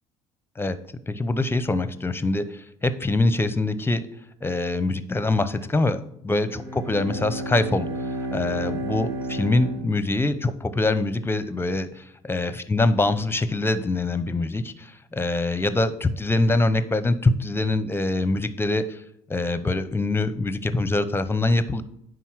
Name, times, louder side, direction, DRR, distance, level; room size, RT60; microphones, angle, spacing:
voice 1, 1.1-4.1 4.4-7.9 8.3-19.0 19.3-21.8, left 2 dB, 15° left, 13 dB, 0.8 m, -24 dB
Bowed string instrument, 6.4-10.7, right 1 dB, 75° right, 1.9 m, -32 dB
10.0 x 3.9 x 6.2 m, 0.73 s
hypercardioid pair, 60°, 16 cm